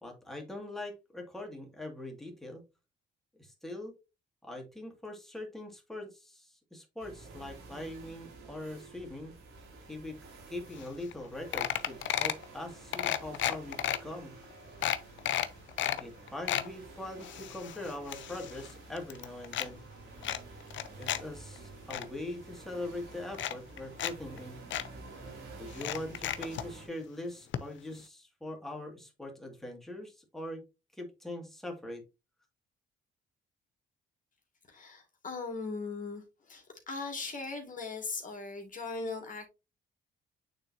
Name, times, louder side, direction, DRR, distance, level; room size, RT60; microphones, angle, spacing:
voice 1, 0.0-2.6 3.4-3.9 4.4-9.3 9.9-10.2 10.5-14.3 16.0-19.8 21.0-24.6 25.6-30.6 30.9-32.0, left 1 dB, ahead, 2.3 m, -42 dB
sound 1, 7.0-26.9, right 3 dB, 90° right, 3.0 m, -50 dB
sound 2, 10.8-10.9 11.1-11.3 11.5-12.4 12.9-14.0 14.4-14.5 14.8-16.0 16.3-16.7 17.2-18.7 19.0-19.7 20.2-21.2 21.6-22.0 22.8-22.9 23.3-24.1 24.4-24.5 24.7-24.9 25.7-26.7 27.5-27.6 27.9-28.0, left 11 dB, 70° left, 0.7 m, -33 dB
voice 2, 34.7-36.2 36.5-39.5, left 4 dB, 40° left, 2.3 m, -39 dB
8.9 x 3.8 x 2.8 m
cardioid pair, 90°, 20 cm